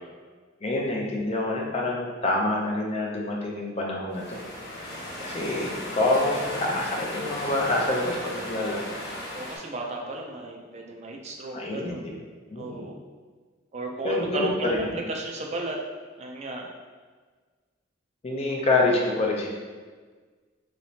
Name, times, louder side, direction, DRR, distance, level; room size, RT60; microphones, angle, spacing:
voice 1, 0.6-4.4 4.7-8.9 11.5-12.9 14.0-15.0 18.2-19.5, left 2 dB, 35° left, -1 dB, 0.5 m, -27 dB
sound 1, 4.1-9.6, left 1 dB, 65° left, 0.9 m, -35 dB
voice 2, 9.3-12.1 12.6-12.9 13.7-15.8 16.2-16.7, right 2 dB, 35° right, 0 dB, 0.4 m, -34 dB
3.1 x 3.0 x 2.8 m, 1.5 s
head